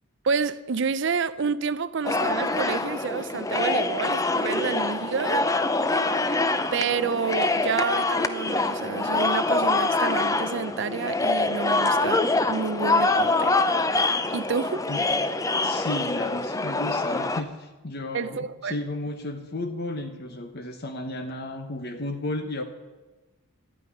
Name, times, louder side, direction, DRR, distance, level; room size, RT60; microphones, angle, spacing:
voice 1, 0.2-5.5 6.7-13.5 14.3-14.8 18.1-18.8, right 5 dB, 55° right, 0.5 m, -29 dB
sound 1, 2.0-17.4, left 2 dB, 15° left, 0.6 m, -25 dB
voice 2, 15.6-22.6, left 2 dB, 45° left, 1.0 m, -33 dB
12.0 x 9.2 x 9.8 m
head